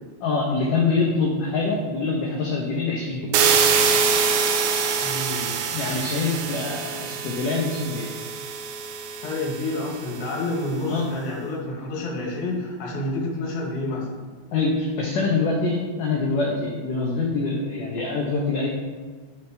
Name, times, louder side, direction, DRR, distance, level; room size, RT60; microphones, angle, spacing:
voice 1, 0.2-3.4 5.7-8.1 10.8-11.1 14.5-18.7, left 3 dB, 80° left, -2 dB, 1.9 m, -25 dB
sound 1, 3.3-10.2, right 6 dB, 85° right, 3.1 m, -24 dB
voice 2, 5.0-5.6 9.2-14.1, left 2 dB, 60° left, -3 dB, 3.4 m, -29 dB
12.0 x 6.4 x 3.3 m, 1.5 s
omnidirectional pair, 5.1 m